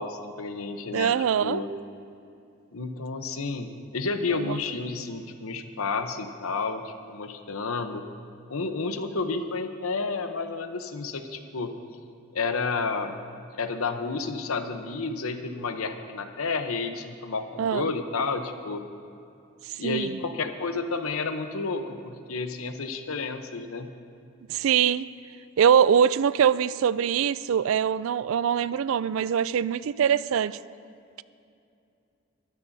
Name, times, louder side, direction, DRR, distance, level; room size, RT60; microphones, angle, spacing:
voice 1, 0.0-1.2 1.4-1.7 2.7-8.0 8.5-11.7 12.3-13.1 13.6-18.8 19.8-23.9, left 4 dB, 85° left, 7 dB, 0.9 m, -31 dB
voice 2, 0.9-1.6 4.3-4.6 17.6-17.9 19.7-20.2 24.5-25.1 25.6-30.6, right 8 dB, 75° right, 17 dB, 0.3 m, -23 dB
22.5 x 13.0 x 2.7 m, 2.6 s
head